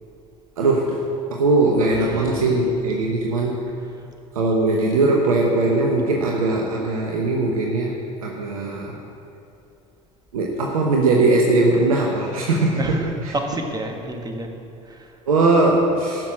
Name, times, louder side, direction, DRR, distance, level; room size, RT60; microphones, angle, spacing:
voice 1, 0.6-1.0 1.3-3.6 4.3-9.0 10.3-13.0 13.3-13.4 15.3-16.3, right 2 dB, 80° right, 0 dB, 1.0 m, -20 dB
voice 2, 1.9-2.6 3.8-4.1 12.8-14.5 14.8-15.2, right 1 dB, 20° right, 3 dB, 1.6 m, -31 dB
13.5 x 6.2 x 6.0 m, 2.7 s
hypercardioid pair, 65°, 18 cm